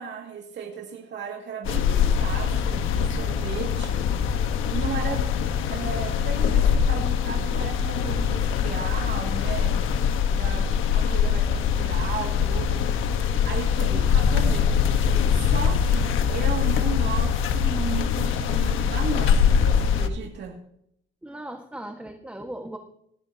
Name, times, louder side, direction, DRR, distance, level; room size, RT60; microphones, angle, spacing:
voice 1, 0.0-4.1 4.7-5.2 5.6-9.8 10.3-14.7 15.3-20.6, right 6 dB, 65° right, 1 dB, 2.3 m, -35 dB
sound 1, 1.6-20.1, left 7 dB, 90° left, 1.3 m, -23 dB
voice 2, 21.2-22.8, right 1 dB, 5° right, 4 dB, 1.6 m, -38 dB
18.5 x 15.0 x 2.9 m, 0.72 s
cardioid pair, 90°, 20 cm